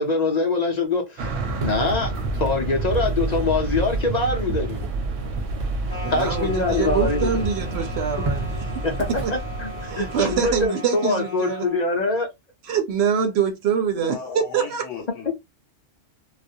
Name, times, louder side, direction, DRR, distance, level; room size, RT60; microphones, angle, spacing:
voice 1, 0.0-4.8 6.1-7.4 8.8-9.7 10.0-12.3, left 3 dB, 50° left, 0.5 m, -24 dB
sound 1, 1.2-10.7, right 2 dB, 90° right, 0.9 m, -28 dB
sound 2, 1.5-7.2 7.4-10.3, right 2 dB, 50° right, 0.4 m, -35 dB
sound 3, 5.9-11.9, left 3 dB, 10° left, 1.0 m, -38 dB
voice 2, 6.0-8.6 9.1-9.3 9.9-11.7 12.7-14.8, right 7 dB, 65° right, 0.8 m, -25 dB
voice 3, 13.9-15.3, left 6 dB, 85° left, 1.0 m, -35 dB
2.4 x 2.0 x 2.6 m
omnidirectional pair, 1.3 m